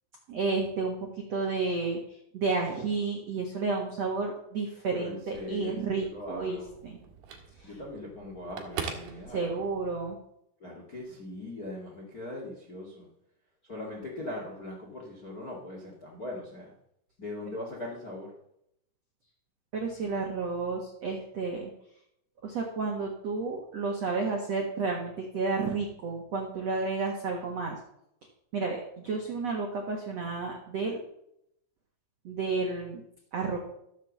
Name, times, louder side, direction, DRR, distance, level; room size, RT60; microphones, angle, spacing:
voice 1, 0.3-2.0 2.3-7.0 7.6-7.7 9.3-10.2 19.7-21.7 22.4-27.8 28.5-31.0 32.2-33.0 33.3-33.6, right 4 dB, 80° right, 1 dB, 1.4 m, -31 dB
voice 2, 4.9-6.7 7.6-9.7 10.6-13.1 13.6-16.7 17.2-18.3, left 1 dB, 50° left, -1 dB, 1.0 m, -40 dB
Telephone, 5.2-10.0, right 6 dB, 60° right, 3.3 m, -43 dB
14.0 x 7.4 x 7.3 m, 0.78 s
omnidirectional pair, 5.6 m